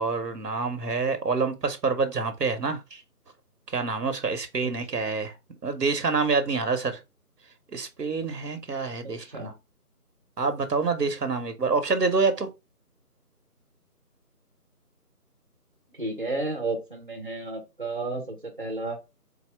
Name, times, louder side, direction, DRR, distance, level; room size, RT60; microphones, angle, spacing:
voice 1, 0.0-3.0 3.7-5.3 5.6-7.0 7.7-9.5 10.4-12.5, right 4 dB, 90° right, 1.1 m, -27 dB
voice 2, 9.0-9.6 15.9-19.0, right 2 dB, 35° right, 0.8 m, -32 dB
4.1 x 2.1 x 4.4 m
figure-of-eight pair, 175°, 47 cm